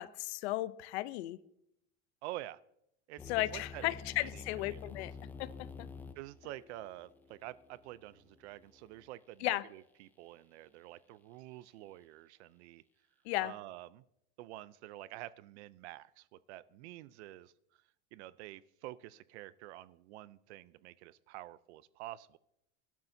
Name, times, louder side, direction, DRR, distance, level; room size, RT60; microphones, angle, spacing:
voice 1, 0.0-1.4 3.3-5.1 5.4-5.5 5.8-5.9 9.4-9.6 13.2-13.5, left 17 dB, 65° left, 17 dB, 0.7 m, -35 dB
voice 2, 2.2-2.6 3.1-3.2 3.5-3.9 4.3-4.4 4.7-4.8 6.2-12.8 13.4-14.0 14.4-17.5 18.1-22.4, right 15 dB, 75° right, 17 dB, 0.6 m, -48 dB
sound 1, 3.2-9.1, left 5 dB, 5° left, 0.4 m, -49 dB
19.0 x 12.0 x 2.7 m, 0.78 s
supercardioid pair, 165°, 34 cm